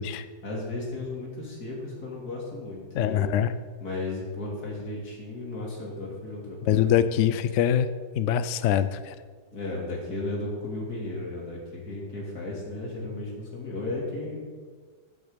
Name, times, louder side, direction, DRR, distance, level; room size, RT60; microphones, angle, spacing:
voice 1, 0.4-3.3 3.8-6.9 7.2-7.4 9.5-14.4, left 2 dB, 55° left, -2 dB, 3.3 m, -35 dB
voice 2, 2.9-3.5 6.7-7.9 8.1-9.1, left 10 dB, 90° left, 13 dB, 0.6 m, -23 dB
13.5 x 7.8 x 5.2 m, 1.5 s
omnidirectional pair, 2.0 m